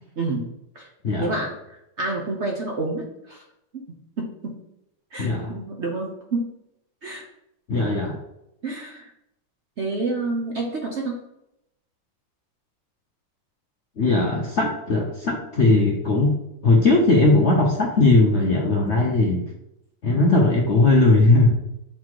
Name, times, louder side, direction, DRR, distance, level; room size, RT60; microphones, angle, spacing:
voice 1, 0.2-0.5 0.7-0.9 1.2-1.5 2.0-3.4 3.7-4.6 5.1-6.5 7.0-7.3 8.6-9.1 9.8-11.2, right 3 dB, 50° right, 0 dB, 0.9 m, -28 dB
voice 2, 1.0-1.4 5.2-5.6 7.7-8.2 14.0-16.4 16.6-19.4 20.0-21.5, left 2 dB, 55° left, 0 dB, 0.8 m, -18 dB
6.5 x 4.0 x 4.7 m, 0.84 s
omnidirectional pair, 2.0 m